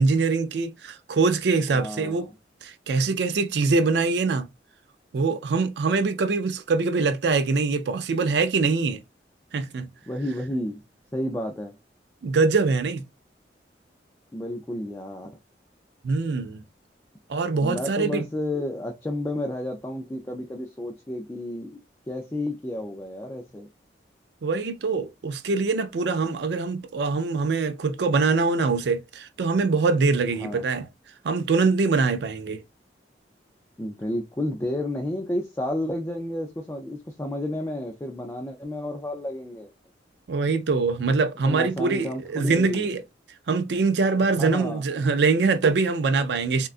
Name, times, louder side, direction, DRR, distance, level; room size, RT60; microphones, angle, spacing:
voice 1, 0.0-2.3 2.6-4.5 5.1-9.0 9.5-9.9 12.2-13.0 16.0-16.6 17.3-18.3 24.4-30.9 31.2-32.6 40.3-43.0 43.5-46.7, right 4 dB, 70° right, 0.4 m, -23 dB
voice 2, 1.7-2.3 10.1-10.8 11.1-11.8 14.3-15.4 17.6-21.8 22.1-23.7 30.4-30.6 33.8-39.7 41.4-42.9 44.4-44.8, left 1 dB, 15° left, 0.4 m, -31 dB
3.6 x 2.2 x 2.4 m
head